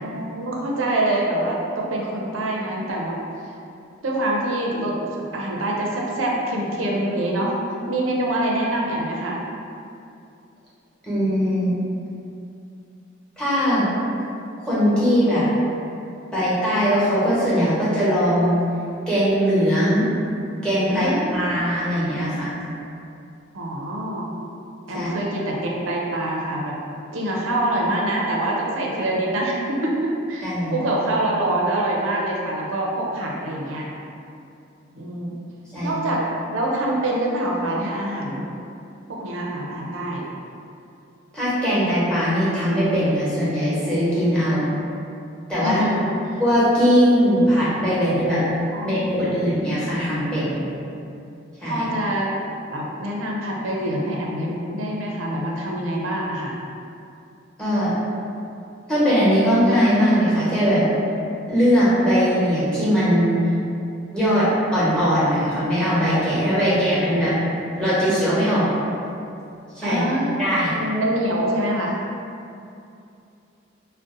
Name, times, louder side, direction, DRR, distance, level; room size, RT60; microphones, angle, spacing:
voice 1, 0.0-3.2 4.0-7.5 7.9-9.4 20.9-21.5 23.5-24.3 24.9-26.8 27.1-33.8 34.9-35.4 35.8-36.2 36.5-38.5 39.1-40.2 45.6-46.4 48.7-49.3 51.6-52.3 52.7-56.5 69.8-70.5 70.8-72.0, right 1 dB, 85° right, -2 dB, 0.5 m, -25 dB
voice 2, 11.0-11.7 13.4-13.9 14.6-15.5 16.3-18.6 19.1-20.0 20.6-22.5 24.9-25.1 30.4-30.8 35.7-35.9 41.3-44.7 45.5-45.9 46.4-48.4 48.8-50.6 51.6-51.8 57.6-57.9 58.9-60.8 61.5-63.3 64.1-67.3 67.8-68.7 69.7-70.0 70.4-70.8, equal, 5° left, -11 dB, 0.9 m, -20 dB
2.6 x 2.1 x 3.7 m, 2.6 s
head